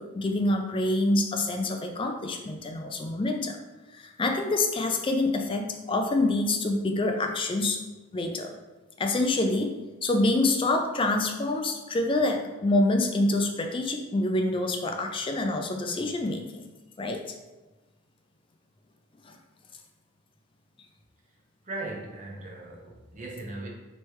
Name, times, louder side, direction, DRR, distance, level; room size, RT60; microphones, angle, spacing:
voice 1, 0.0-3.6 3.9-7.8 8.1-8.5 9.0-16.7 17.0-17.3 19.3-19.4, left 2 dB, 25° left, 4 dB, 0.4 m, -26 dB
voice 2, 21.6-23.7, right 2 dB, 35° right, -2 dB, 0.7 m, -38 dB
3.2 x 3.2 x 4.5 m, 1.2 s
head